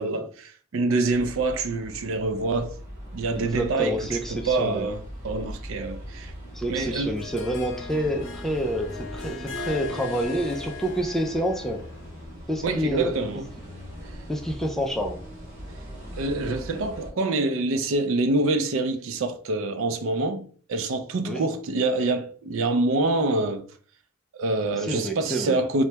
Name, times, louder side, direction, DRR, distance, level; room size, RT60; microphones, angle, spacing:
voice 1, 0.0-2.7 3.1-6.3 6.7-7.2 12.6-13.5 16.2-23.7 24.3-25.8, right 2 dB, 75° right, 0.4 m, -26 dB
sound 1, 1.1-17.1, equal, 40° right, 1.2 m, -40 dB
voice 2, 3.4-4.9 6.5-11.8 12.5-13.2 14.3-15.2 21.3-21.4 24.8-25.6, equal, ahead, 0.3 m, -28 dB
Harp, 6.8-12.1, left 3 dB, 70° left, 0.6 m, -39 dB
2.8 x 2.2 x 3.3 m
head